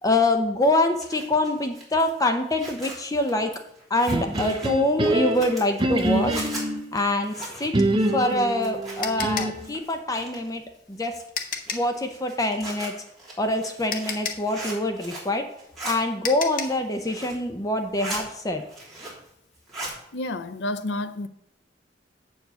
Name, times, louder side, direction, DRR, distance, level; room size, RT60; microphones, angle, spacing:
voice 1, 0.0-3.5 3.9-6.5 6.9-7.7 8.1-10.6 10.9-11.1 11.7-12.9 13.4-15.4 15.8-18.6, left 1 dB, 20° left, 0.6 m, -25 dB
Zipper (clothing), 0.7-9.3 9.6-10.6 11.0-15.3 15.6-15.9 16.4-17.4 17.8-18.2 18.6-19.3 19.5-20.0, right 2 dB, ahead, 3.2 m, -39 dB
sound 1, 4.1-6.9 7.7-9.7, right 1 dB, 30° right, 0.7 m, -25 dB
sound 2, 8.1-12.0 13.4-13.5 13.9-16.9, left 6 dB, 50° left, 0.8 m, -33 dB
voice 2, 20.1-21.3, left 2 dB, 75° left, 0.6 m, -30 dB
7.7 x 4.8 x 6.8 m
head